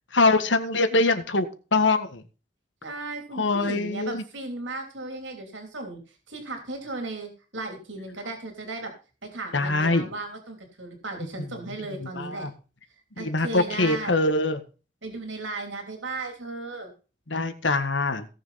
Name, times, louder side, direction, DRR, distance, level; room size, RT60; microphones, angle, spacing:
voice 1, 0.1-2.2 3.3-4.2 9.5-10.1 11.4-11.5 11.9-12.5 13.2-14.6 17.3-18.3, left 2 dB, 85° left, 9 dB, 1.7 m, -24 dB
voice 2, 2.8-6.0 6.3-8.9 9.2-12.5 13.2-14.2 15.0-16.9, right 2 dB, 85° right, 4 dB, 3.2 m, -36 dB
17.5 x 7.0 x 4.2 m, 0.34 s
head